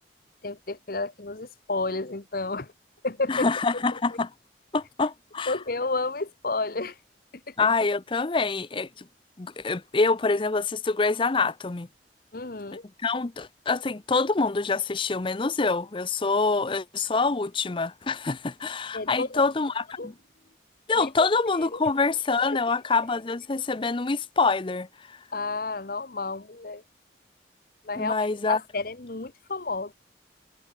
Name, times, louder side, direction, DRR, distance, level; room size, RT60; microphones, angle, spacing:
voice 1, 0.4-2.7 3.0-3.5 5.5-7.0 7.5-7.6 12.3-12.8 18.9-19.4 20.0-20.1 20.9-21.3 21.7-21.8 22.3-22.6 25.3-26.8 27.8-29.9, left 3 dB, 55° left, 1.2 m, -31 dB
voice 2, 3.3-4.3 4.7-5.6 7.6-9.1 9.4-11.9 13.0-20.1 20.9-25.2 27.9-28.6, left 4 dB, 30° left, 0.6 m, -26 dB
head